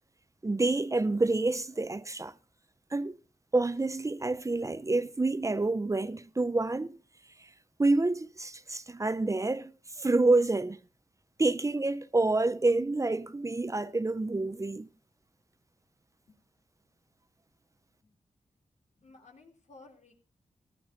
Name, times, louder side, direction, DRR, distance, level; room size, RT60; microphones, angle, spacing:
voice 1, 0.4-2.3 2.9-3.2 3.5-7.0 7.8-9.7 10.0-10.8 11.4-14.9, right 2 dB, 25° right, 0.6 m, -28 dB
voice 2, 19.0-20.1, left 3 dB, 70° left, 2.9 m, -55 dB
15.0 x 11.5 x 4.0 m
cardioid pair, 70°, 13 cm